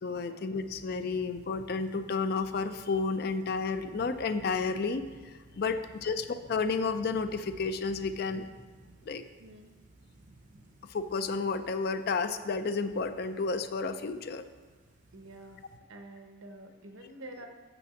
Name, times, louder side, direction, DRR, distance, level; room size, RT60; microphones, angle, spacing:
voice 1, 0.0-8.5 9.1-9.2 10.8-14.4, left 4 dB, 50° left, 10 dB, 0.4 m, -31 dB
sound 1, 0.5-15.8, right 2 dB, 40° right, 0.6 m, -56 dB
voice 2, 5.7-6.1 9.4-9.7 15.1-15.6 15.9-17.5, right 1 dB, 75° right, 4 dB, 1.0 m, -48 dB
6.0 x 5.9 x 7.0 m, 1.3 s
head